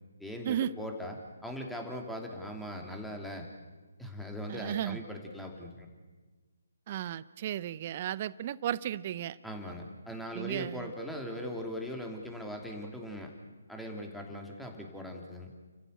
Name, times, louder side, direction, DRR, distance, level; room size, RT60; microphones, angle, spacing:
voice 1, 0.2-1.2 1.4-3.5 4.0-5.9 9.4-13.3 13.7-15.5, equal, ahead, 1 dB, 2.8 m, -40 dB
voice 2, 4.5-5.0 6.9-9.4 10.3-10.9, right 11 dB, 35° right, 19 dB, 0.7 m, -34 dB
29.5 x 15.5 x 8.0 m, 1.3 s
figure-of-eight pair, 145°, 0 cm